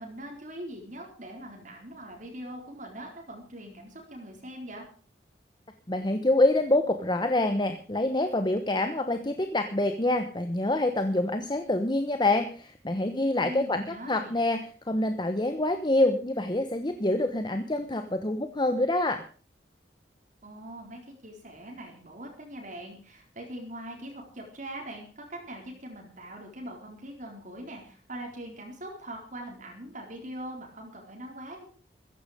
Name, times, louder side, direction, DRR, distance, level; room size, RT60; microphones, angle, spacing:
voice 1, 0.0-4.9 13.4-14.4 20.4-31.7, right 1 dB, 40° right, 1 dB, 4.1 m, -42 dB
voice 2, 5.9-14.6 14.9-19.2, left 1 dB, 25° left, 7 dB, 1.0 m, -26 dB
15.5 x 15.0 x 5.0 m, 0.42 s
head